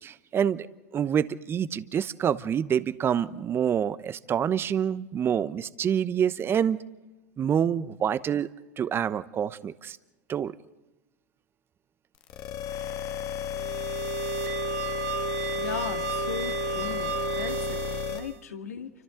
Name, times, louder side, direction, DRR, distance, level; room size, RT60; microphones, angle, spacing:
voice 1, 0.0-0.7 0.9-6.8 7.4-8.5 8.8-10.0 10.3-10.5, right 8 dB, 30° right, 15 dB, 1.0 m, -27 dB
sound 1, 12.2-18.2, left 9 dB, 45° left, 1.7 m, -33 dB
sound 2, 13.5-18.4, right 9 dB, 65° right, 2.1 m, -33 dB
voice 2, 15.4-18.9, left 7 dB, 85° left, 6 dB, 2.1 m, -38 dB
29.5 x 25.0 x 3.9 m, 1.1 s
hypercardioid pair, 100°, 8 cm